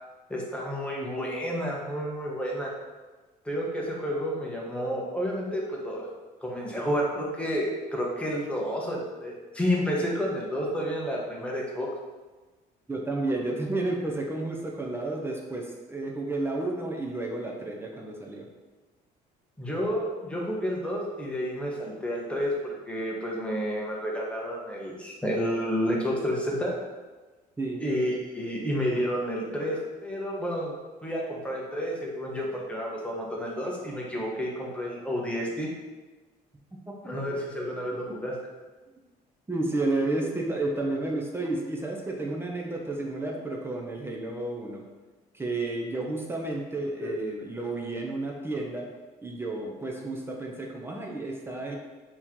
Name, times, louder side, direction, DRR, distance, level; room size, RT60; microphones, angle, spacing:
voice 1, 0.3-2.7 3.4-6.1 6.4-11.9 19.6-22.5 22.9-26.7 27.8-30.7 31.0-35.7 37.0-38.3 47.0-47.1, equal, 5° left, -3 dB, 1.0 m, -30 dB
voice 2, 12.9-18.5 27.6-27.8 37.9-38.0 39.5-44.8 45.3-48.9 49.2-51.8, right 2 dB, 15° right, -1 dB, 0.6 m, -31 dB
4.3 x 3.0 x 3.6 m, 1.2 s
cardioid pair, 110°, 17 cm